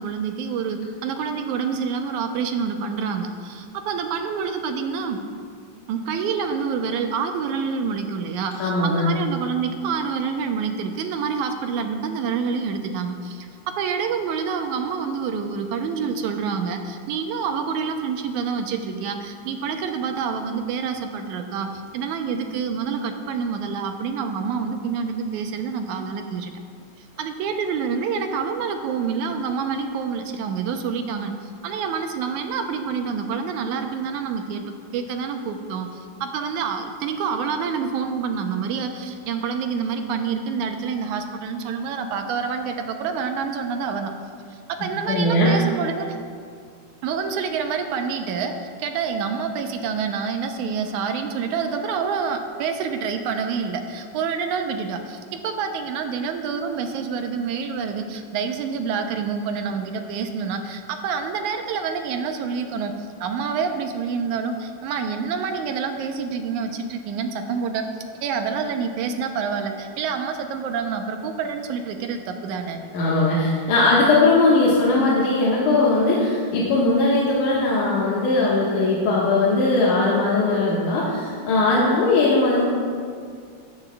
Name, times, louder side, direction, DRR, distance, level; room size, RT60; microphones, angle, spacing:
voice 1, 0.0-5.2 5.9-26.5 27.2-44.1 44.7-46.2 47.0-62.9 63.2-67.9 68.2-72.8, right 6 dB, 80° right, 5 dB, 2.1 m, -27 dB
voice 2, 8.6-9.1 45.1-45.5 72.9-82.6, left 2 dB, 80° left, -7 dB, 2.9 m, -19 dB
15.0 x 13.5 x 2.3 m, 2.2 s
omnidirectional pair, 3.5 m